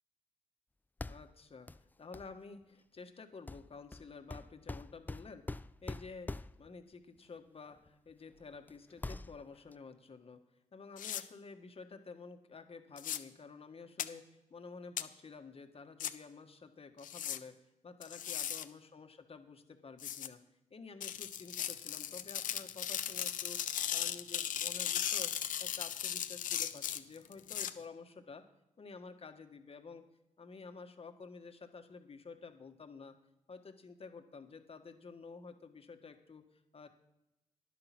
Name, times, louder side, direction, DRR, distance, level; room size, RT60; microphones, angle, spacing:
sound 1, 1.0-1.4 1.7-1.8 2.1-2.3 3.5-6.8 7.9-8.0 8.4-8.7 9.0-9.8, left 2 dB, 15° left, 0.3 m, -44 dB
voice 1, 1.1-5.5 5.8-10.4 10.7-17.5 17.8-20.4 20.7-25.3 25.6-28.4 28.8-30.0 30.4-33.2 33.5-36.9, left 4 dB, 45° left, 7 dB, 1.5 m, -51 dB
sound 2, 11.0-11.2 13.0-13.2 14.0-14.1 15.0-15.1 16.0-16.1 17.0-17.4 18.0-18.6 20.0-20.3 21.0-27.7, left 10 dB, 75° left, 0.6 m, -37 dB
11.0 x 9.1 x 6.0 m, 0.89 s
cardioid pair, 60°, 14 cm